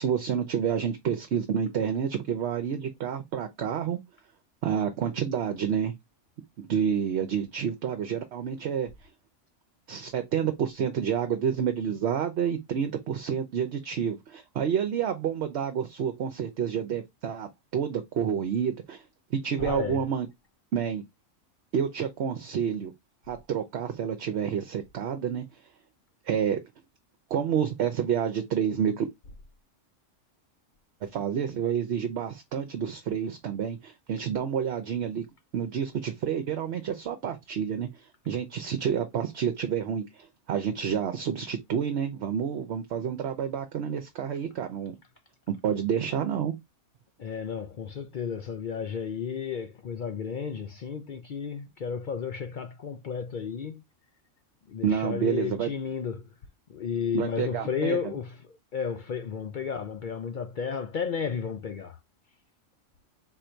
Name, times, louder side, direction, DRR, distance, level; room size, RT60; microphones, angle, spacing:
voice 1, 0.0-4.0 4.6-5.9 6.6-9.1 9.9-19.0 19.3-20.3 20.7-21.0 21.7-22.9 23.3-25.4 26.3-26.6 27.3-29.1 31.0-35.2 35.5-45.0 45.6-46.5 54.8-55.7 57.1-58.1, right 8 dB, 65° right, 0.9 m, -29 dB
voice 2, 19.6-20.0 47.2-53.8 54.7-56.3 56.7-62.0, left 6 dB, 55° left, 0.5 m, -33 dB
4.2 x 2.6 x 4.4 m
omnidirectional pair, 1.3 m